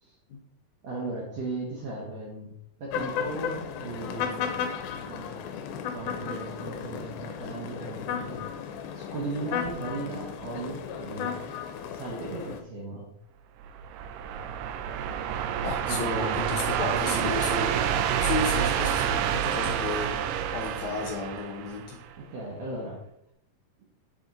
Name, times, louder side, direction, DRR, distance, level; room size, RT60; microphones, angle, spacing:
voice 1, 0.8-2.5 2.8-4.5 5.0-5.4 5.9-8.5 8.9-11.4 11.9-13.1 15.8-16.5 16.9-18.1 22.2-23.0, right 3 dB, 65° right, -3 dB, 1.8 m, -37 dB
sound 1, 2.9-12.6, left 7 dB, 85° left, 2.4 m, -34 dB
sound 2, 13.6-22.1, right 9 dB, 80° right, 2.0 m, -28 dB
voice 2, 15.6-17.7 18.2-20.2 20.5-22.0, left 4 dB, 70° left, 0 dB, 2.1 m, -33 dB
7.7 x 4.3 x 3.9 m, 0.76 s
omnidirectional pair, 4.2 m